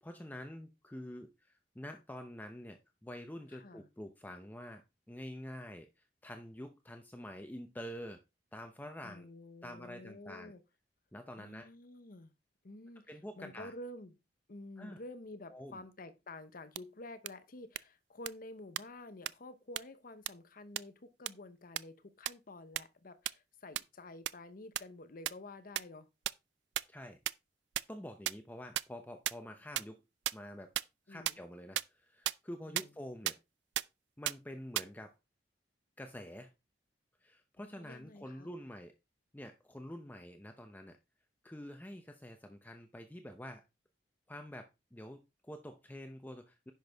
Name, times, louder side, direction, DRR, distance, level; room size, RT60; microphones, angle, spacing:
voice 1, 0.0-8.2 8.5-9.2 9.6-10.5 11.1-11.7 13.1-13.7 14.8-15.0 15.5-15.8 26.9-27.2 27.9-30.0 30.3-30.7 31.1-33.4 34.2-35.1 36.0-36.5 37.2-38.9 39.3-41.0 41.4-43.6 44.3-46.7, left 1 dB, 10° left, 0.7 m, -47 dB
voice 2, 3.5-3.8 9.0-10.6 11.4-12.3 12.6-14.1 14.5-26.1 31.1-31.4 32.7-32.9 37.6-38.5, left 2 dB, 55° left, 0.9 m, -50 dB
sound 1, 16.8-16.9 17.3-17.4 17.8-17.9 18.3-18.4 18.8-18.9 19.3-19.4 19.8-19.9 20.3-20.4 20.8-20.9 21.3-21.4 21.8-21.9 22.3-22.4 22.8-22.9 23.3-23.4 23.8-23.9 24.3-24.4 24.8-24.9 25.3-25.4 25.8-25.9 26.3-26.4 26.8-26.9 27.3-27.4 27.7-27.8 28.3-28.4 28.8-28.9 29.3-29.4 29.8-29.9 30.3-30.4 30.8-30.9 31.3-31.4 31.8-31.9 32.3-32.4 32.8-32.9 33.3-33.4 33.8-33.9 34.3-34.4 34.8-34.9, right 13 dB, 85° right, 0.4 m, -32 dB
10.5 x 6.1 x 3.5 m
head